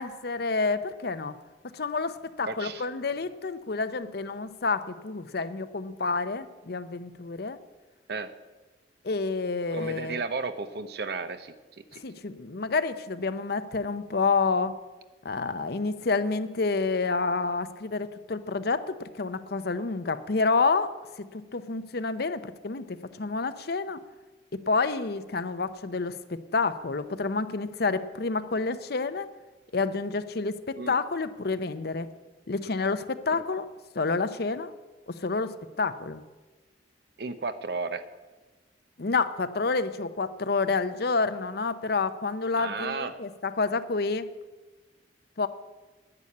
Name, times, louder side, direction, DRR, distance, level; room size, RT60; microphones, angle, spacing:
voice 1, 0.0-1.4 1.6-7.6 9.0-10.2 12.0-14.8 15.2-24.0 24.5-29.3 29.7-32.1 32.5-33.7 33.9-34.7 35.1-36.2 39.0-44.2 45.4-45.5, left 4 dB, 60° left, 12 dB, 0.7 m, -29 dB
voice 2, 2.5-2.9 8.1-8.3 9.7-11.5 11.9-12.0 30.8-31.0 33.3-33.4 37.2-38.0 42.5-43.1, right 4 dB, 60° right, 11 dB, 0.9 m, -33 dB
10.5 x 9.8 x 8.5 m, 1.2 s
head